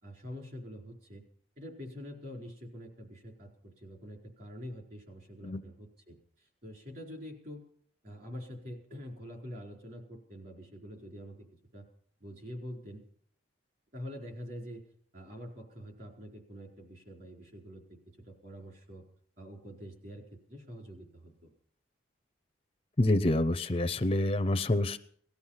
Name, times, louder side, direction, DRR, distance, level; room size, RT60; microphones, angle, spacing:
voice 1, 0.0-1.2 1.6-7.6 8.0-11.5 11.7-11.8 12.2-13.0 13.9-14.9 15.1-18.0 18.2-19.0 19.4-21.5, equal, 45° right, 1 dB, 4.4 m, -46 dB
voice 2, 23.0-25.0, left 1 dB, 30° left, 11 dB, 0.5 m, -27 dB
19.0 x 13.0 x 5.8 m, 0.62 s
head